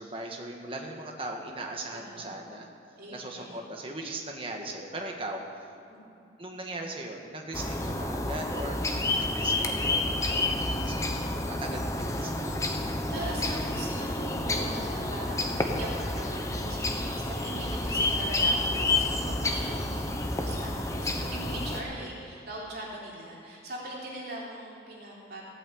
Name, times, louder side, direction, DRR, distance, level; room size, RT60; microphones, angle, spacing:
voice 1, 0.0-2.7 3.1-5.7 6.4-8.8 9.1-11.1 11.5-12.6 17.8-18.0 21.5-21.8, right 2 dB, 30° right, 1 dB, 1.5 m, -39 dB
voice 2, 1.9-2.4 3.0-3.7 5.9-6.2 12.7-25.4, right 1 dB, 55° right, -4 dB, 3.8 m, -41 dB
sound 1, 7.5-21.8, left 2 dB, 15° left, 1.0 m, -29 dB
16.0 x 8.8 x 8.6 m, 2.6 s
head